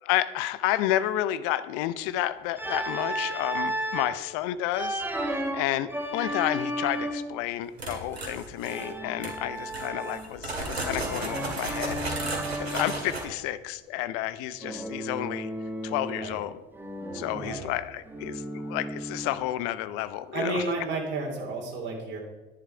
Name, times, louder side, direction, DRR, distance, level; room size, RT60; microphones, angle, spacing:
voice 1, 0.0-12.0 12.6-15.5 15.8-16.6 17.1-20.6, left 13 dB, 45° left, 15 dB, 0.7 m, -31 dB
Organ, 2.6-4.2 4.7-7.4 8.6-10.4 10.8-13.1 14.6-16.4 16.7-19.5, right 1 dB, 5° right, 1.6 m, -34 dB
sound 1, 7.8-8.9 9.2-9.4 9.7-13.3, right 2 dB, 85° right, 2.1 m, -34 dB
voice 2, 17.3-17.7 20.3-22.2, right 2 dB, 35° right, -2 dB, 3.2 m, -32 dB
11.0 x 10.5 x 4.6 m, 1.1 s
figure-of-eight pair, 75°, 31 cm